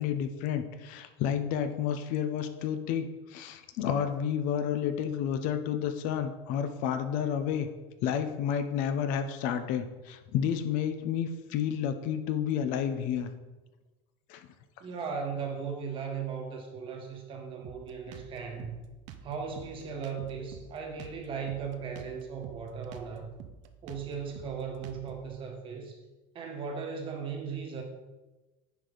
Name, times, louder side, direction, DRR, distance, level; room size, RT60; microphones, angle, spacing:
voice 1, 0.0-7.7 8.0-13.3 14.3-14.5, left 8 dB, 60° left, 8 dB, 0.8 m, -30 dB
voice 2, 14.8-18.8 19.2-23.3 23.8-26.0 26.3-27.8, right 6 dB, 35° right, 3 dB, 1.4 m, -37 dB
Drum kit, 17.6-25.3, right 8 dB, 55° right, 0.7 m, -48 dB
9.8 x 4.9 x 4.0 m, 1.1 s
supercardioid pair, 140°, 15 cm